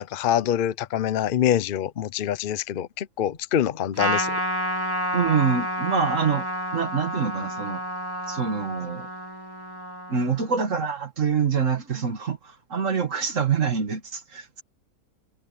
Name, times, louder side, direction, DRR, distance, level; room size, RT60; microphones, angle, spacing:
voice 1, 0.0-4.3, left 10 dB, 70° left, 0.4 m, -25 dB
Trumpet, 4.0-10.7, equal, 10° right, 2.4 m, -30 dB
voice 2, 5.1-6.5 6.7-7.8 8.3-9.1 10.1-14.6, right 6 dB, 45° right, 1.8 m, -25 dB
omnidirectional pair, 1.9 m